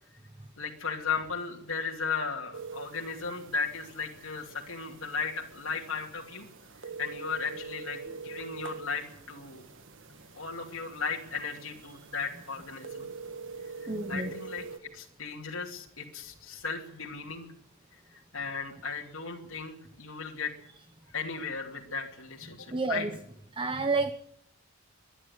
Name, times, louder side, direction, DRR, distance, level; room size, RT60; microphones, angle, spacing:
voice 1, 0.6-6.5 7.0-9.6 10.3-13.1 13.8-14.7 14.9-17.5 18.1-20.5 21.1-23.1, left 5 dB, 75° left, -2 dB, 2.9 m, -36 dB
sound 1, 2.5-14.8, right 4 dB, 65° right, 1.4 m, -45 dB
voice 2, 13.9-14.3 22.7-23.2 23.6-24.1, right 3 dB, 25° right, 10 dB, 1.0 m, -29 dB
24.0 x 11.0 x 9.7 m, 0.70 s
head